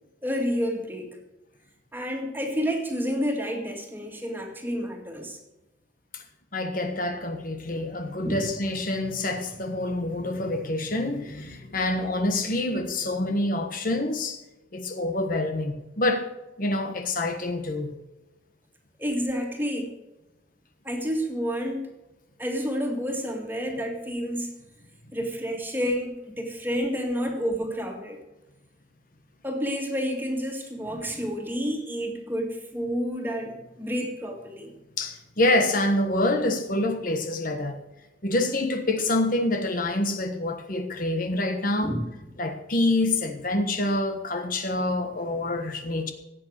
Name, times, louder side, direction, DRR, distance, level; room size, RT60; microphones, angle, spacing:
voice 1, 0.2-1.2 1.9-5.4 8.2-8.4 19.0-19.9 20.8-21.9 22.4-24.5 25.1-28.2 29.4-34.7 41.8-42.0, equal, 10° right, 2.2 m, -29 dB
voice 2, 6.5-14.4 14.7-16.2 16.6-17.9 35.0-37.8 38.2-41.9 42.4-46.1, left 2 dB, 45° left, 1.3 m, -26 dB
16.0 x 8.8 x 6.6 m
head